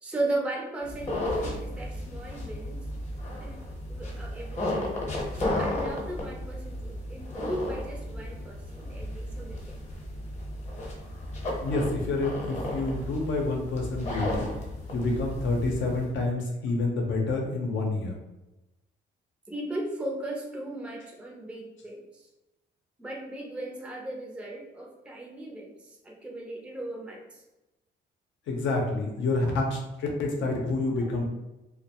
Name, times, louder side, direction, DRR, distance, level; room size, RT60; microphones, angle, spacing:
voice 1, 0.0-2.8 3.4-3.6 3.9-4.9 5.3-9.8 19.5-22.3 23.0-27.4, right 1 dB, 5° right, 0 dB, 0.4 m, -36 dB
sound 1, 0.8-16.1, left 1 dB, 35° left, 0.8 m, -34 dB
voice 2, 11.6-14.5 14.9-18.1 28.5-31.2, left 2 dB, 70° left, 0 dB, 0.7 m, -28 dB
2.2 x 2.1 x 2.8 m, 1.0 s
cardioid pair, 90°, 20 cm